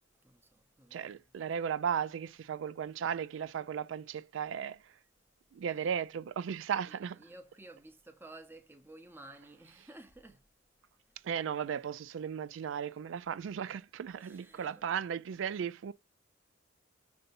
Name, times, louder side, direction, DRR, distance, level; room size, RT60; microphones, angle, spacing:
voice 1, 0.2-1.2 5.7-5.9 6.9-10.4 14.2-14.8, right 2 dB, 10° right, 0.7 m, -54 dB
voice 2, 0.9-4.9 5.5-7.2 11.2-15.9, right 8 dB, 65° right, 0.3 m, -36 dB
6.5 x 2.7 x 2.6 m
head